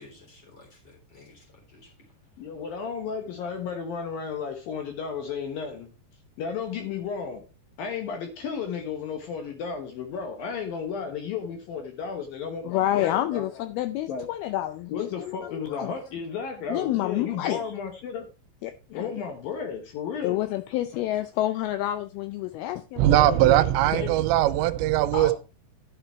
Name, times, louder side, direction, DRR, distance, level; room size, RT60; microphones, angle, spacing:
voice 1, 0.0-1.9 25.1-25.3, left 2 dB, 25° left, 3.9 m, -41 dB
voice 2, 2.4-5.9 6.4-7.4 7.8-13.5 14.1-14.3 14.9-18.3 18.9-20.4 23.9-24.1, left 6 dB, 65° left, 2.5 m, -33 dB
voice 3, 12.6-15.9 16.7-17.7 18.6-19.1 20.2-23.6, left 14 dB, 90° left, 2.2 m, -29 dB
voice 4, 23.0-25.3, right 14 dB, 85° right, 2.9 m, -20 dB
11.5 x 6.8 x 4.5 m
omnidirectional pair, 5.1 m